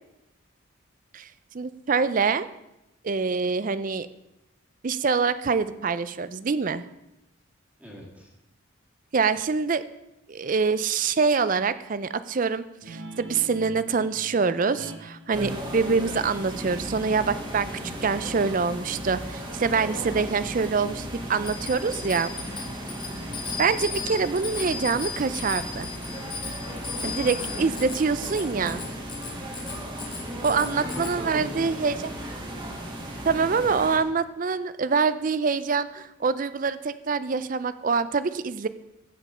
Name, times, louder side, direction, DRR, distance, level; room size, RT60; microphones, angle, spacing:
voice 1, 1.5-2.5 3.0-4.1 4.8-6.8 9.1-9.8 10.3-17.7 18.0-22.3 23.6-25.9 27.0-28.8 30.4-32.1 33.3-38.7, right 5 dB, 40° right, 14 dB, 0.4 m, -25 dB
voice 2, 7.8-8.3 22.8-23.3 30.4-32.0, equal, 5° right, -3 dB, 1.8 m, -42 dB
Guitar, 12.8-20.0, right 1 dB, 65° right, 1.2 m, -43 dB
sound 1, 15.3-34.0, equal, 20° right, 1.6 m, -36 dB
Bicycle bell, 21.4-31.1, left 5 dB, 25° left, 1.6 m, -36 dB
15.0 x 5.2 x 5.5 m, 0.91 s
head